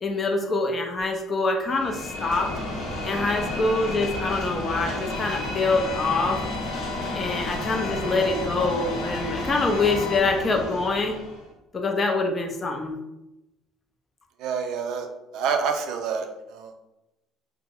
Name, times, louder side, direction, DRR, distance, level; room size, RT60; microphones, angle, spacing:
voice 1, 0.0-2.5 3.0-6.4 7.1-11.2 11.7-12.9, left 3 dB, 25° left, 3 dB, 0.5 m, -25 dB
sound 1, 1.6-11.5, left 1 dB, 60° left, 0.7 m, -32 dB
sound 2, 5.1-10.2, left 8 dB, 85° left, 0.4 m, -39 dB
voice 2, 14.4-15.1 15.3-16.7, right 6 dB, 65° right, 5 dB, 0.4 m, -28 dB
2.9 x 2.0 x 3.6 m, 0.95 s
cardioid pair, 135°, 0 cm